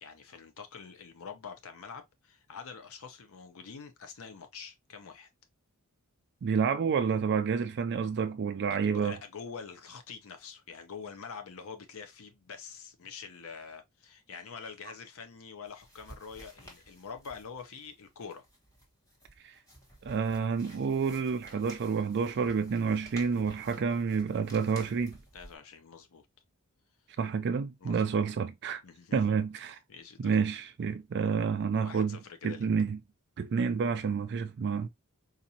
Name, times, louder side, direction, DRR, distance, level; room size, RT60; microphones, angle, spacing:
voice 1, 0.0-5.3 8.7-18.4 23.5-23.7 25.3-26.2 27.8-28.0 28.8-29.2 29.9-30.4 31.8-32.6, left 6 dB, 65° left, 0.6 m, -45 dB
voice 2, 6.4-9.2 19.4-19.6 20.0-25.2 27.2-28.8 29.1-29.8 30.2-32.2 32.4-33.0 33.4-34.9, right 6 dB, 50° right, 0.4 m, -29 dB
sound 1, 15.6-25.5, equal, 15° left, 1.2 m, -54 dB
4.1 x 2.5 x 2.7 m
head